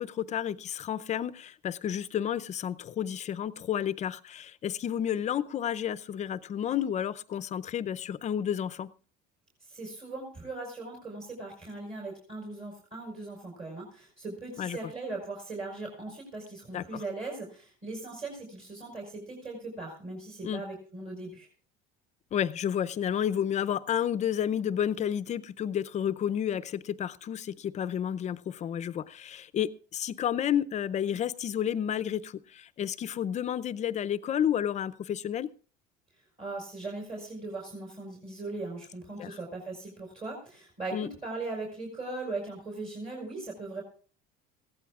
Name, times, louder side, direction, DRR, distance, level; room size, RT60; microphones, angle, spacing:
voice 1, 0.0-8.9 14.6-14.8 16.7-17.0 20.4-20.6 22.3-35.5 39.2-39.4 40.9-41.1, left 9 dB, 35° left, 16 dB, 0.5 m, -31 dB
voice 2, 9.7-21.5 36.4-43.8, right 3 dB, 30° right, -1 dB, 4.5 m, -39 dB
19.5 x 15.0 x 2.4 m, 0.41 s
cardioid pair, 120°, 20 cm